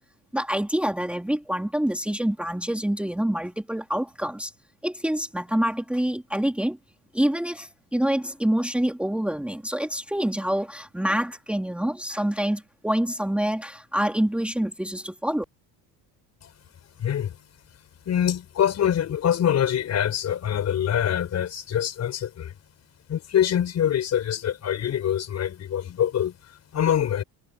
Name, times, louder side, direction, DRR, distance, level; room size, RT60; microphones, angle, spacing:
voice 1, 0.3-4.5 4.8-6.8 7.1-15.4, right 1 dB, 5° right, 3.0 m, -26 dB
voice 2, 17.0-17.4 18.1-22.5 23.1-27.2, left 10 dB, 40° left, 5.9 m, -25 dB
cardioid pair, 160°, 43 cm